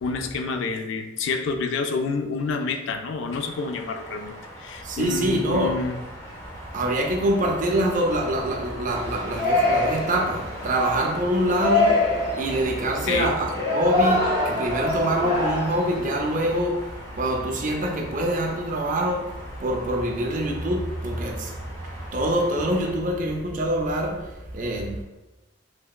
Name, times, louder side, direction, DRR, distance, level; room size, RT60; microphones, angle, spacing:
voice 1, 0.0-4.3 4.6-6.0 13.1-13.3, left 4 dB, 70° left, 6 dB, 0.3 m, -28 dB
sound 1, 3.3-22.9, equal, 15° left, 0.5 m, -41 dB
voice 2, 4.8-5.8 6.7-12.1 12.4-21.6 22.1-25.0, right 1 dB, 40° right, 2 dB, 0.4 m, -25 dB
Yell, 8.9-16.6, left 2 dB, 40° left, 1.4 m, -25 dB
3.2 x 2.9 x 2.3 m, 1.0 s
head